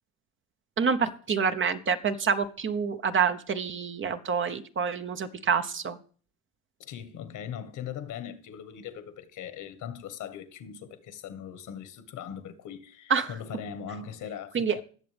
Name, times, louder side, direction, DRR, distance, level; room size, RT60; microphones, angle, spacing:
voice 1, 0.8-6.0 13.1-13.3 14.5-14.8, right 6 dB, 35° right, 0.9 m, -27 dB
voice 2, 6.8-14.8, left 8 dB, 60° left, 1.5 m, -40 dB
18.0 x 6.9 x 3.4 m
supercardioid pair, 95°, 34 cm